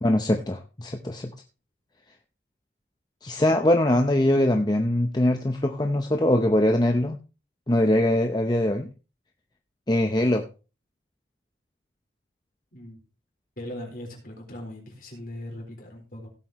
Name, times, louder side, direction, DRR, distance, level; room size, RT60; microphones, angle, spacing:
voice 1, 0.0-1.3 3.2-7.2 7.7-8.9 9.9-10.4, left 1 dB, 20° left, 5 dB, 0.7 m, -22 dB
voice 2, 12.7-13.0 13.6-16.3, left 1 dB, 50° left, 1 dB, 4.1 m, -39 dB
17.0 x 7.7 x 3.0 m, 0.32 s
head